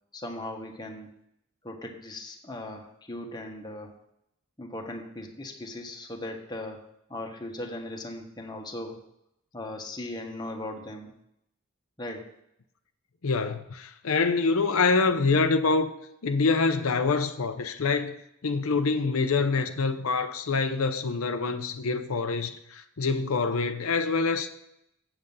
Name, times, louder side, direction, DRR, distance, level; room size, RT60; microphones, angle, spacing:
voice 1, 0.1-1.1 1.6-3.9 4.6-6.8 7.1-9.0 9.5-11.1 12.0-12.3, left 1 dB, 20° left, 1.2 m, -38 dB
voice 2, 13.2-15.9 16.2-18.2 18.4-24.5, left 4 dB, 85° left, 0.7 m, -25 dB
8.0 x 7.6 x 5.5 m
head